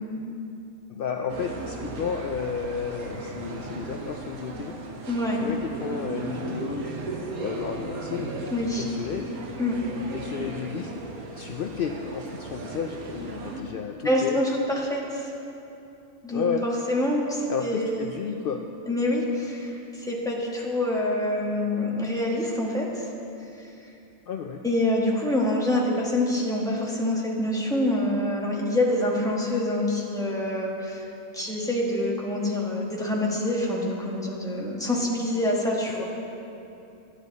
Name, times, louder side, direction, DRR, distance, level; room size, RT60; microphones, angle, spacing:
voice 1, 0.9-4.7 5.4-6.9 7.4-8.3 8.8-9.4 10.1-14.4 16.3-16.7 17.5-18.6 24.3-24.6, left 6 dB, 70° left, 3 dB, 0.5 m, -32 dB
sound 1, 1.3-13.6, right 3 dB, 85° right, 1.5 m, -36 dB
voice 2, 5.1-5.4 8.5-8.8 9.6-9.8 14.0-15.3 16.2-16.4 16.9-18.1 18.9-23.1 23.6-23.7 24.6-31.0 31.3-36.0, left 1 dB, 5° left, -4 dB, 1.3 m, -26 dB
13.5 x 9.6 x 4.1 m, 2.8 s
omnidirectional pair, 1.5 m